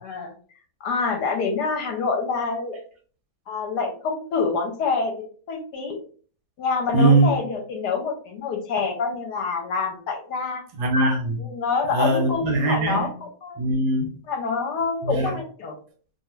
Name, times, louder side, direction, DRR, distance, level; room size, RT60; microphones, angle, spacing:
voice 1, 0.0-0.3 0.8-2.8 3.5-5.1 5.5-6.0 6.6-10.6 11.4-13.6 14.3-15.7, left 4 dB, 70° left, 1.1 m, -26 dB
voice 2, 6.9-7.3 10.8-11.4 11.9-13.1 13.6-14.1 15.0-15.3, right 2 dB, 70° right, 1.1 m, -20 dB
2.8 x 2.4 x 3.0 m
omnidirectional pair, 2.0 m